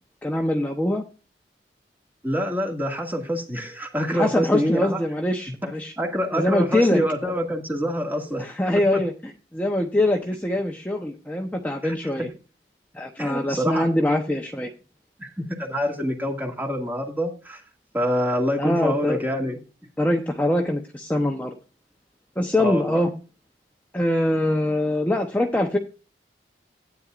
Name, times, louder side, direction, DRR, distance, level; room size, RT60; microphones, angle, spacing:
voice 1, 0.2-1.0 4.1-5.9 6.3-7.0 8.4-12.3 12.9-14.7 18.6-19.2 20.0-21.5 22.4-23.1 23.9-25.8, left 1 dB, 10° left, 0.9 m, -23 dB
voice 2, 2.2-5.0 5.6-5.7 6.0-8.5 8.9-9.0 11.8-12.3 13.2-13.9 15.2-17.6 17.9-19.6 22.6-23.0, equal, 10° right, 2.0 m, -26 dB
13.0 x 9.3 x 2.5 m
head